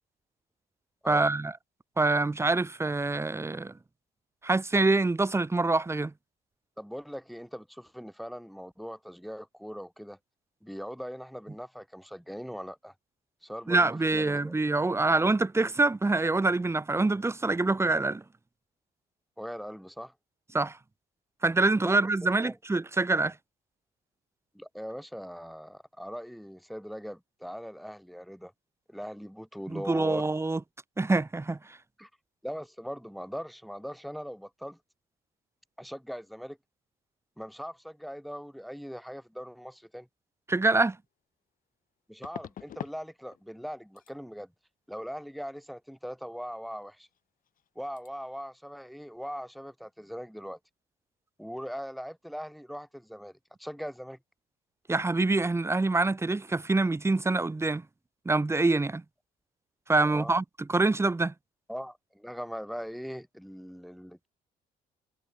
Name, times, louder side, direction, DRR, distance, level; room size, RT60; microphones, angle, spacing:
voice 1, 1.1-1.5 2.0-3.7 4.4-6.1 13.7-18.2 20.5-20.8 21.4-23.4 29.7-30.6 31.0-31.8 40.5-41.0 54.9-57.8 58.3-59.0 59.9-61.3, right 3 dB, 15° right, 3.6 m, -25 dB
voice 2, 6.8-10.2 10.6-12.9 13.4-14.5 19.4-20.1 21.8-22.6 24.5-28.5 28.9-30.2 32.0-32.1 32.4-34.8 35.8-36.6 37.4-40.1 42.1-44.5 44.9-47.1 47.8-50.6 51.4-53.3 53.6-54.2 60.0-60.3 61.7-64.3, equal, ahead, 7.0 m, -40 dB
sound 1, 40.7-40.8 42.2-43.0 43.3-43.7 44.0-44.1 47.1-47.2 47.4-47.7 48.0-48.1, left 10 dB, 55° left, 4.6 m, -43 dB
cardioid pair, 110°, 17 cm